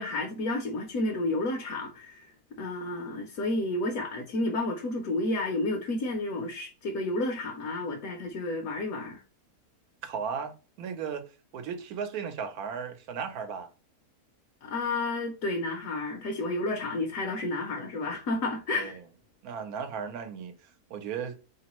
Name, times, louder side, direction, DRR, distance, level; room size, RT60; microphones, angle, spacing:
voice 1, 0.0-2.3 2.6-9.2 14.6-19.0, left 2 dB, 65° left, 1.1 m, -31 dB
voice 2, 10.0-11.2 11.5-13.7 18.7-19.0 19.4-21.4, right 6 dB, 75° right, 1.1 m, -36 dB
4.1 x 3.1 x 3.0 m
omnidirectional pair, 1.6 m